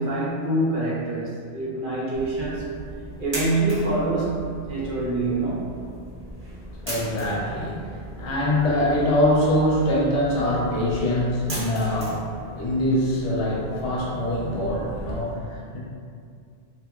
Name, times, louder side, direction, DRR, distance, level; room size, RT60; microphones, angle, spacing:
voice 1, 0.0-2.7 3.2-5.7, right 2 dB, 55° right, -7 dB, 0.6 m, -25 dB
sound 1, 2.1-15.2, right 1 dB, 20° right, 0.9 m, -38 dB
voice 2, 6.8-15.8, left 1 dB, 80° left, -4 dB, 0.9 m, -24 dB
2.8 x 2.3 x 2.3 m, 2.2 s
omnidirectional pair, 1.2 m